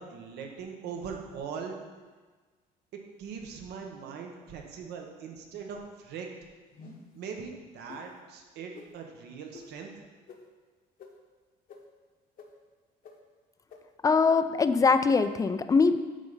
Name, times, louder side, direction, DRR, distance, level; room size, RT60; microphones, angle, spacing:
voice 1, 0.0-1.8 2.9-6.3 7.1-9.9, right 6 dB, 75° right, 2 dB, 1.1 m, -41 dB
sound 1, 6.7-7.2 7.9-8.0 8.7-8.9 9.5-9.6 10.3-10.4 11.0-11.1 11.7-11.8 12.4-12.5 13.0-13.1 13.7-13.8, left 5 dB, 55° left, 1.0 m, -47 dB
voice 2, 14.0-16.0, left 4 dB, 20° left, 10 dB, 0.4 m, -22 dB
8.9 x 3.4 x 5.5 m, 1.4 s
cardioid pair, 110°, 17 cm